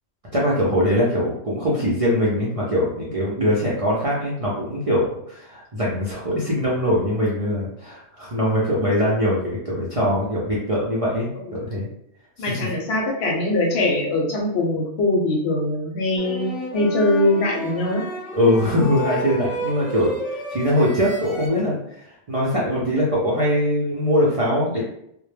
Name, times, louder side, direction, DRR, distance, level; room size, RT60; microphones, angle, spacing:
voice 1, 0.3-11.9 12.4-12.6 18.3-24.8, equal, 50° right, -6 dB, 0.4 m, -22 dB
voice 2, 12.4-18.0, left 1 dB, 70° left, 1 dB, 0.8 m, -22 dB
sound 1, 16.2-21.5, equal, ahead, 0.5 m, -32 dB
2.1 x 2.1 x 3.1 m, 0.75 s
omnidirectional pair, 1.2 m